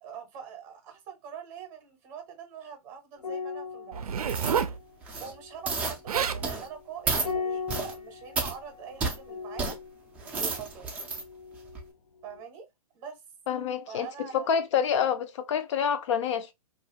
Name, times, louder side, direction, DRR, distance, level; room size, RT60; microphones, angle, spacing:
voice 1, 0.0-4.1 5.2-9.8 10.3-10.9 12.2-12.7 12.9-13.2 13.9-14.5, right 7 dB, 30° right, 0.7 m, -43 dB
sound 1, 3.2-11.9 12.2-12.4, left 5 dB, 90° left, 0.8 m, -40 dB
Zipper (clothing), 3.9-4.8 5.8-5.9 6.1-6.4 7.2-7.4, right 7 dB, 75° right, 0.4 m, -29 dB
sound 2, 4.3-4.6 5.0-5.3 5.7-6.0 6.4-6.7 7.1-7.3 7.7-7.9 8.4-8.5 9.0-9.2 9.6-9.7 10.2-11.2 11.7-11.8, right 4 dB, 10° right, 0.4 m, -31 dB
voice 2, 13.5-16.5, left 7 dB, 50° left, 0.5 m, -27 dB
2.4 x 2.2 x 2.7 m
hypercardioid pair, 140°, 19 cm